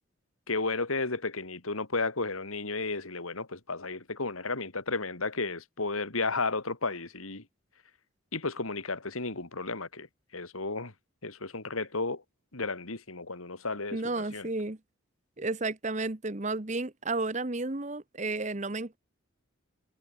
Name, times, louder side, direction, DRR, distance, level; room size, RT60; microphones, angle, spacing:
voice 1, 0.5-7.4 8.3-10.1 10.3-10.9 11.2-12.2 12.5-14.5, left 3 dB, 90° left, 2.8 m, -33 dB
voice 2, 13.9-14.8 15.4-19.0, right 2 dB, 35° right, 1.1 m, -32 dB
head